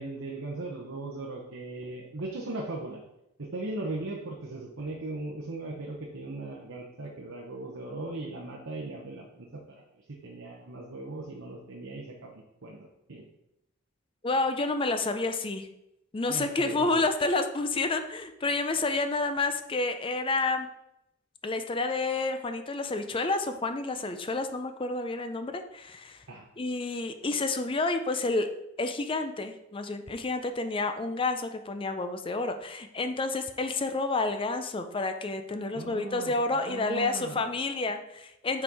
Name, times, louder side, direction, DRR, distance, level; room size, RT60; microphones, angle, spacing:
voice 1, 0.0-3.0 3.4-12.8 13.1-13.2 16.3-17.0 26.3-26.5 35.7-37.5, right 2 dB, 80° right, -1 dB, 0.9 m, -38 dB
voice 2, 14.2-15.7 16.1-20.7 21.4-26.2 26.6-28.5 28.8-38.6, left 3 dB, 25° left, 8 dB, 0.5 m, -29 dB
5.8 x 4.4 x 4.8 m, 0.84 s
head